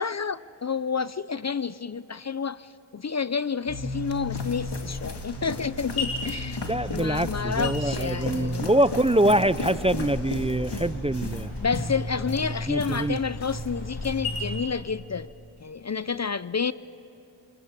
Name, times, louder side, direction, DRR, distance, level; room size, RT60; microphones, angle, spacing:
voice 1, 0.0-6.6 6.9-8.7 11.6-15.3 15.6-16.7, left 5 dB, 35° left, 0.5 m, -30 dB
sound 1, 3.7-14.6, left 1 dB, 80° left, 6.0 m, -34 dB
sound 2, 3.9-13.7 14.0-14.4, left 3 dB, 55° left, 2.2 m, -37 dB
voice 2, 6.6-11.5 12.7-13.2, right 1 dB, 15° right, 0.5 m, -24 dB
25.5 x 23.0 x 8.9 m
cardioid pair, 55°, 48 cm